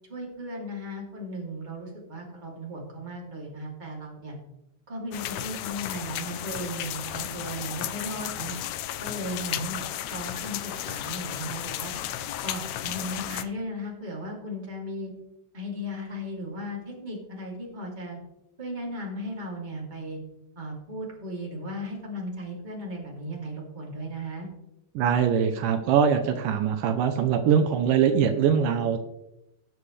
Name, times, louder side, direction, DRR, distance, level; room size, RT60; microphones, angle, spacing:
voice 1, 0.1-4.4 4.9-8.6 9.0-9.8 10.1-11.9 12.4-15.1 15.5-18.2 18.6-20.2 20.6-24.5, equal, 15° right, -3 dB, 2.6 m, -36 dB
sound 1, 5.1-13.4, left 12 dB, 85° left, 1.6 m, -34 dB
voice 2, 25.0-29.0, right 7 dB, 80° right, 6 dB, 2.3 m, -22 dB
19.0 x 6.9 x 3.3 m, 0.89 s
omnidirectional pair, 3.9 m